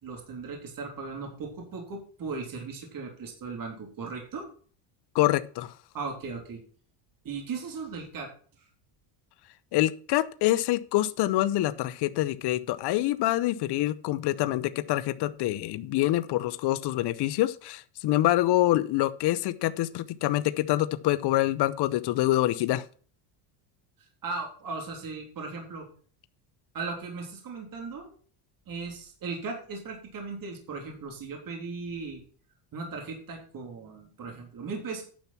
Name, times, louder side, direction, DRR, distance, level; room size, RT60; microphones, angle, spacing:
voice 1, 0.0-4.4 5.9-6.6 7.2-8.3 8.6-8.7 24.0-25.9 26.7-28.1 28.7-32.2 32.7-35.0, right 4 dB, 40° right, 2 dB, 3.5 m, -37 dB
voice 2, 5.1-5.7 9.7-22.8, left 15 dB, 55° left, 14 dB, 0.8 m, -26 dB
10.5 x 6.0 x 5.8 m, 0.43 s
cardioid pair, 120°, 48 cm